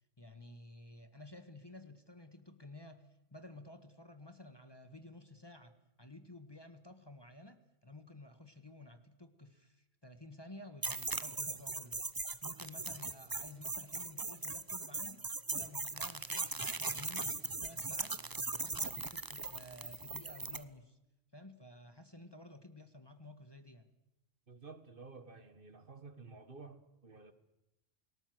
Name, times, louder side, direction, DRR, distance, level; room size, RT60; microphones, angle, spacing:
voice 1, 0.2-12.2 12.4-18.2 18.5-21.0 21.3-23.9, left 1 dB, 20° left, 8 dB, 1.6 m, -53 dB
sound 1, 10.8-20.6, right 3 dB, 20° right, 0.7 m, -39 dB
voice 2, 24.5-27.3, right 4 dB, 40° right, 11 dB, 1.7 m, -52 dB
29.5 x 19.5 x 8.0 m, 0.94 s
omnidirectional pair, 1.4 m